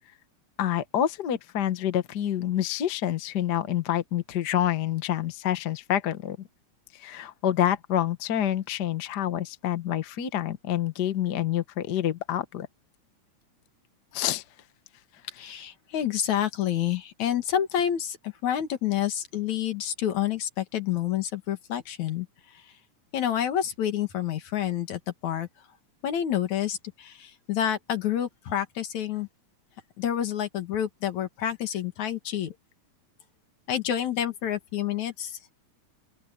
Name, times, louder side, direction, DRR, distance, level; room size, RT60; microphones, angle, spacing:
voice 1, 0.6-6.4 6.9-12.7 14.1-14.4, left 11 dB, 50° left, 1.3 m, -27 dB
voice 2, 15.3-22.7 23.1-25.5 26.0-29.3 30.0-32.5 33.7-35.5, left 10 dB, 70° left, 3.1 m, -28 dB
open air
omnidirectional pair, 3.4 m